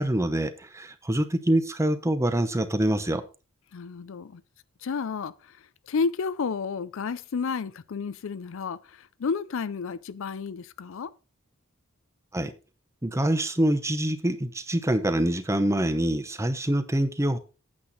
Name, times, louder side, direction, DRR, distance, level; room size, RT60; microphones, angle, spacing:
voice 1, 0.0-3.2 12.3-12.5 13.0-17.4, right 1 dB, 15° right, 0.7 m, -25 dB
voice 2, 3.7-4.4 4.8-5.6 5.9-11.1, left 5 dB, 65° left, 0.4 m, -31 dB
8.7 x 8.1 x 4.0 m
head